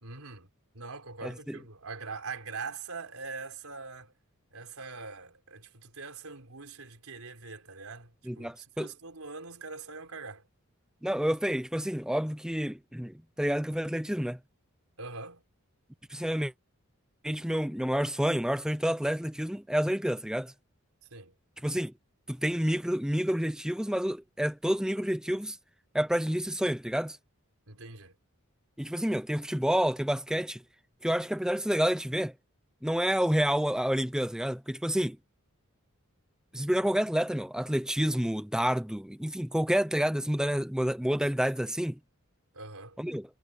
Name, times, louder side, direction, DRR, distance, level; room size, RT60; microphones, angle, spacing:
voice 1, 0.0-4.1 4.5-10.4 15.0-15.4 21.1-21.3 27.7-28.2 42.5-43.0, right 4 dB, 85° right, 4.1 m, -43 dB
voice 2, 1.2-1.5 8.3-8.9 11.0-14.4 16.1-16.5 17.2-20.5 21.6-21.9 22.3-25.6 25.9-27.2 28.8-30.6 31.0-32.3 32.8-35.2 36.5-42.0 43.0-43.2, equal, 5° right, 0.7 m, -29 dB
head